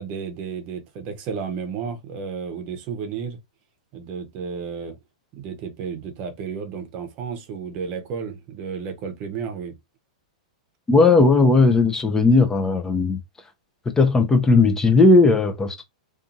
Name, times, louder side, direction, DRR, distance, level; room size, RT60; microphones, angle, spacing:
voice 1, 0.0-3.4 3.9-5.0 5.3-9.7, right 6 dB, 45° right, 0.7 m, -32 dB
voice 2, 10.9-13.2 14.0-15.8, left 3 dB, 15° left, 0.4 m, -16 dB
2.6 x 2.4 x 2.5 m
hypercardioid pair, 120°, 4 cm